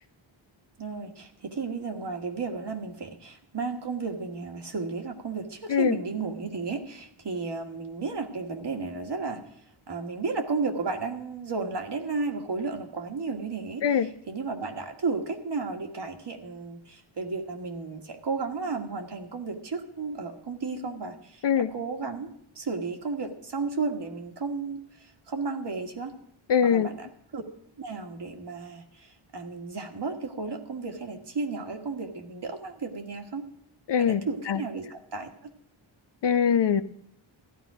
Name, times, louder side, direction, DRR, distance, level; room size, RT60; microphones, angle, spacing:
voice 1, 0.8-9.4 9.9-22.3 22.5-26.1 26.6-27.1 27.3-27.4 27.8-33.4 34.0-35.3, right 4 dB, 55° right, 4 dB, 1.8 m, -33 dB
voice 2, 26.5-26.9 33.9-34.6 36.2-36.8, left 7 dB, 60° left, 12 dB, 0.7 m, -23 dB
14.5 x 11.5 x 4.9 m, 0.68 s
wide cardioid pair, 80°, 49 cm